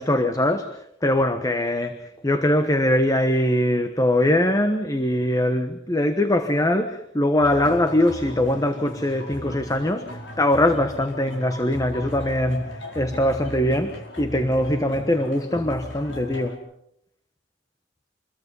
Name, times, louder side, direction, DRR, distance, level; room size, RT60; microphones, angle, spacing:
voice 1, 0.0-16.6, left 1 dB, 20° left, 1.2 m, -22 dB
sound 1, 7.4-16.5, left 1 dB, 85° left, 5.0 m, -37 dB
27.5 x 22.0 x 5.5 m
head